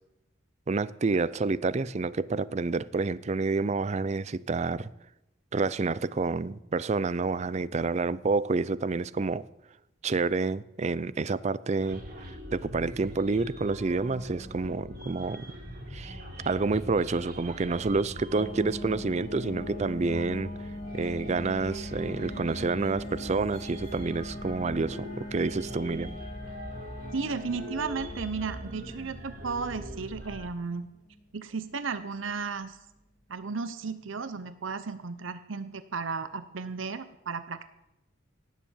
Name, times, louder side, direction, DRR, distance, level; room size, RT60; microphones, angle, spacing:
voice 1, 0.7-4.9 5.5-9.4 10.0-12.0 12.5-15.5 15.9-16.2 16.5-20.5 20.9-26.1, right 3 dB, 35° right, 0.4 m, -28 dB
sound 1, 11.8-30.5, equal, 50° right, 3.2 m, -42 dB
sound 2, 18.4-33.0, left 1 dB, 40° left, 2.0 m, -42 dB
voice 2, 27.1-30.9 31.3-32.8 33.3-37.7, right 4 dB, 75° right, 0.7 m, -34 dB
18.0 x 7.4 x 7.3 m
head